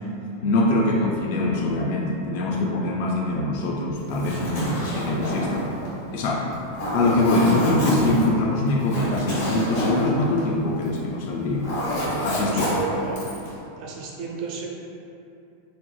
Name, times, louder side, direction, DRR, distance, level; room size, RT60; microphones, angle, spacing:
voice 1, 0.4-5.7 6.1-6.5 6.9-11.7 12.2-12.7, left 2 dB, 60° left, -1 dB, 0.3 m, -23 dB
Zipper (clothing), 4.0-11.1 11.4-13.5, equal, 75° left, 1.2 m, -27 dB
voice 2, 12.5-13.4 13.8-14.7, right 4 dB, 55° right, -1 dB, 0.5 m, -32 dB
3.0 x 2.0 x 2.2 m, 2.7 s
hypercardioid pair, 120°, 0 cm